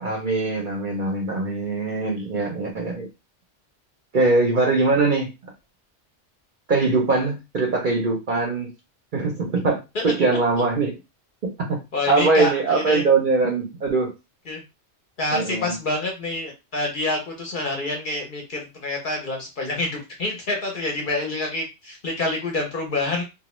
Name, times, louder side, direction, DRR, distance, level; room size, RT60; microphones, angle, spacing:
voice 1, 0.0-3.1 4.1-5.5 6.7-8.7 9.1-9.8 10.0-10.9 11.7-11.8 12.1-14.1 15.3-15.7, right 3 dB, 50° right, 0 dB, 0.7 m, -22 dB
voice 2, 11.9-13.0 14.5-14.6 15.2-23.2, left 2 dB, 55° left, 1 dB, 0.7 m, -27 dB
2.3 x 2.1 x 3.0 m, 0.25 s
omnidirectional pair, 1.2 m